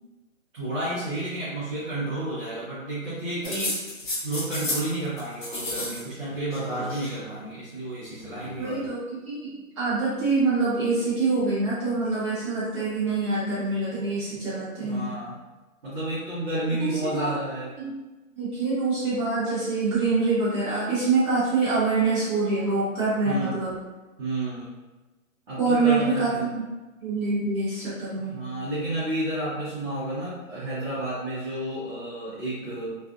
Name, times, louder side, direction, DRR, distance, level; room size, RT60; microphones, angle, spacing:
voice 1, 0.5-3.8 4.2-8.7 14.8-15.4 15.8-17.7 23.2-23.6 24.2-24.8 25.5-26.5 28.3-33.0, right 1 dB, 45° right, -10 dB, 0.9 m, -31 dB
sound 1, 3.4-4.9 5.2-6.0 6.3-7.1 8.2-8.9, left 2 dB, 35° left, 0.6 m, -32 dB
voice 2, 8.6-9.5 9.8-15.1 16.8-17.3 17.8-17.9 18.3-23.7 25.6-26.7 27.0-28.3, right 3 dB, 20° right, -12 dB, 1.0 m, -25 dB
2.5 x 2.4 x 2.4 m, 1.1 s
hypercardioid pair, 160°, 42 cm